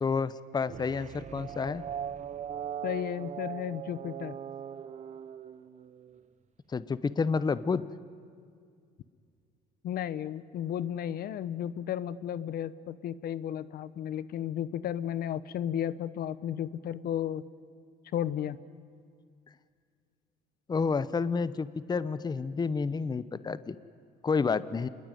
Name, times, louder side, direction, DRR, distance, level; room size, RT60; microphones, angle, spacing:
voice 1, 0.0-1.8 6.7-7.8 20.7-23.8 24.2-24.9, left 5 dB, 25° left, 16 dB, 0.9 m, -29 dB
sound 1, 0.7-6.2, right 9 dB, 45° right, 1.1 m, -40 dB
voice 2, 2.8-4.4 9.8-17.5 18.1-18.6, left 10 dB, 65° left, 16 dB, 0.9 m, -33 dB
27.5 x 21.0 x 9.3 m, 2.2 s
cardioid pair, 110°, 17 cm